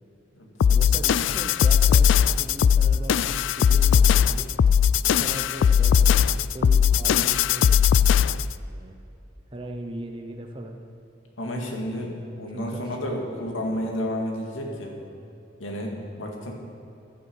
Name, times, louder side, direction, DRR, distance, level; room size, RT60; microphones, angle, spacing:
sound 1, 0.6-8.5, left 8 dB, 75° left, 0.3 m, -19 dB
voice 1, 0.7-4.5 5.2-7.8 8.6-9.0 9.5-10.8 12.5-13.0 13.2-13.5, right 1 dB, 25° right, 2 dB, 0.8 m, -39 dB
voice 2, 11.4-15.0 15.6-16.5, equal, 90° left, 0 dB, 2.2 m, -31 dB
15.0 x 11.0 x 4.7 m, 2.7 s
head